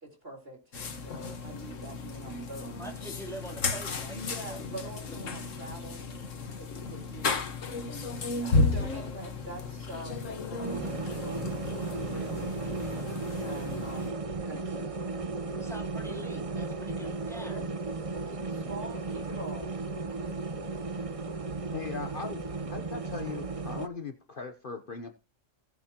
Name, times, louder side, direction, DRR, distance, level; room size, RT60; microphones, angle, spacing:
voice 1, 0.0-2.7 4.0-6.3 6.6-7.3 7.8-12.5 13.4-14.1 14.4-15.0 17.5-17.6 18.3-19.7, right 2 dB, 50° right, 1 dB, 4.3 m, -45 dB
sound 1, 0.7-14.1, left 3 dB, 75° left, 1.7 m, -34 dB
voice 2, 2.8-4.6 5.1-5.3 6.4-6.6 8.8-9.0 15.6-17.7, right 1 dB, ahead, -1 dB, 3.4 m, -44 dB
sound 2, 10.6-23.9, right 3 dB, 30° right, 0.8 m, -35 dB
voice 3, 21.7-22.4 22.7-25.2, left 5 dB, 45° left, 6 dB, 1.1 m, -39 dB
18.5 x 7.2 x 2.9 m, 0.31 s
omnidirectional pair, 1.3 m